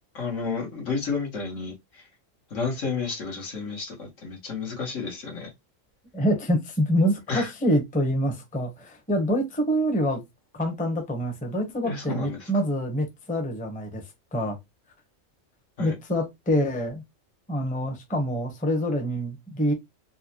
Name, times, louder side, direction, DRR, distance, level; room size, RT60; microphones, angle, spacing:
voice 1, 0.1-2.0 2.5-5.5 7.3-7.5 11.8-12.5 15.8-15.9, left 4 dB, 70° left, 1.7 m, -31 dB
voice 2, 6.1-10.2 10.5-14.0 14.3-14.6 15.8-17.0 17.5-19.7, equal, 10° left, 0.7 m, -26 dB
4.4 x 2.1 x 2.9 m
omnidirectional pair, 1.3 m